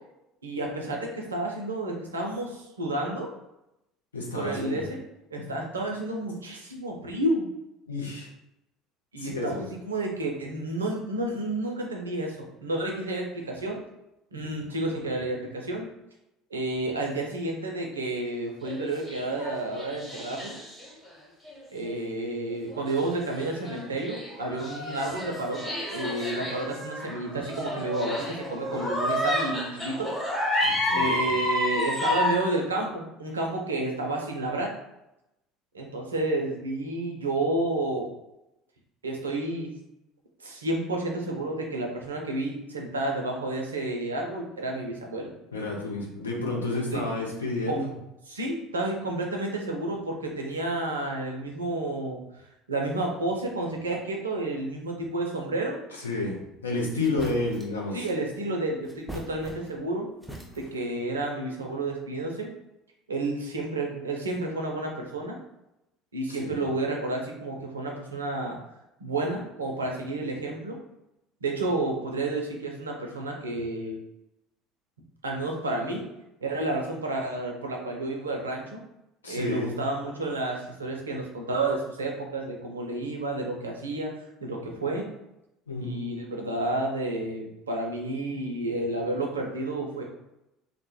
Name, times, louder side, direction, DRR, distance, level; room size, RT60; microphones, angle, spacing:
voice 1, 0.4-3.3 4.3-5.0 5.3-7.5 9.1-13.8 14.3-15.9 16.5-20.6 21.7-30.1 31.0-34.7 35.7-38.1 39.0-39.7 40.4-45.3 46.7-47.0 47.7-47.8 48.3-52.2 52.7-55.8 56.9-57.1 57.9-60.1 60.5-62.5 63.1-65.4 66.1-68.6 69.0-70.8 71.4-74.0 75.2-76.1 76.4-78.8 79.3-84.1 84.4-85.1 85.8-90.0, right 2 dB, 80° right, 1 dB, 0.4 m, -30 dB
voice 2, 4.1-4.8 5.4-5.5 7.9-8.3 9.2-9.6 30.6-31.3 45.5-47.9 56.0-58.1 66.3-66.6 79.2-79.8 85.7-86.0, left 2 dB, 80° left, -1 dB, 0.5 m, -31 dB
sound 1, 18.6-21.1 21.4-21.5 22.7-32.4, left 1 dB, 10° left, 1.0 m, -30 dB
sound 2, 56.6-56.7 57.0-57.8 58.8-59.9 60.2-60.9, right 1 dB, 5° right, 0.4 m, -42 dB
2.1 x 2.0 x 2.9 m, 0.88 s
figure-of-eight pair, 65°, 0 cm